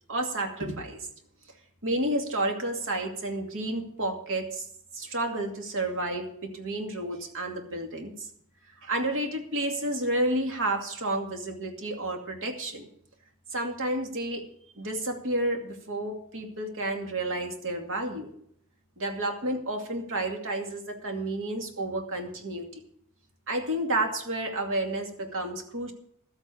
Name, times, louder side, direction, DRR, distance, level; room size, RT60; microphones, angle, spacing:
voice 1, 0.1-1.0 1.8-4.7 4.9-8.1 8.8-12.9 13.5-14.4 14.8-18.3 19.0-22.8 23.5-25.9, right 1 dB, 60° right, 3 dB, 2.4 m, -31 dB
13.0 x 8.1 x 6.9 m, 0.67 s
head